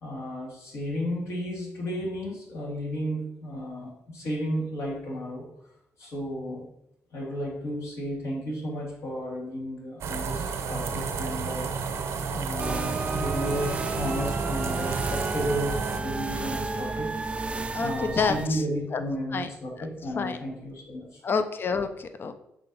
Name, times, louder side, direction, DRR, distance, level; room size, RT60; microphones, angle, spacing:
voice 1, 0.0-5.5 6.0-6.7 7.1-21.2, equal, 75° left, -3 dB, 2.3 m, -33 dB
sound 1, 10.0-16.0, right 5 dB, 75° right, 0.7 m, -31 dB
sound 2, 12.6-18.5, right 3 dB, 25° right, 0.4 m, -32 dB
voice 2, 17.7-18.6 18.9-19.0 19.3-19.5 19.8-19.9 20.2-20.4 21.2-22.3, left 5 dB, 45° left, 9 dB, 0.6 m, -28 dB
5.9 x 3.3 x 5.4 m, 0.82 s
cardioid pair, 85°, 5 cm